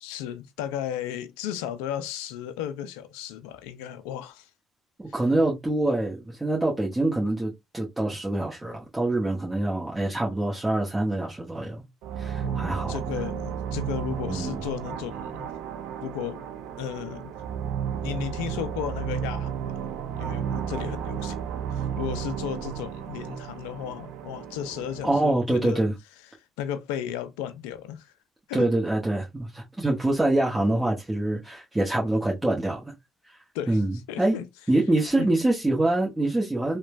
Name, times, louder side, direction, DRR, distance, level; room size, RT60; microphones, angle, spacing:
voice 1, 0.0-4.5 12.4-15.5 16.0-16.4 16.8-17.3 18.0-19.7 20.1-21.4 21.7-25.8 26.3-28.1 28.5-28.7 33.5-33.8 34.1-34.4 35.2-35.3, left 10 dB, 90° left, 0.3 m, -34 dB
voice 2, 5.0-11.8 12.2-12.9 14.3-14.6 25.0-25.9 28.5-32.9 33.7-34.3 34.7-36.8, right 2 dB, 15° right, 1.0 m, -25 dB
sound 1, 12.0-25.3, right 8 dB, 80° right, 0.3 m, -33 dB
2.9 x 2.2 x 2.4 m
hypercardioid pair, 55°, 0 cm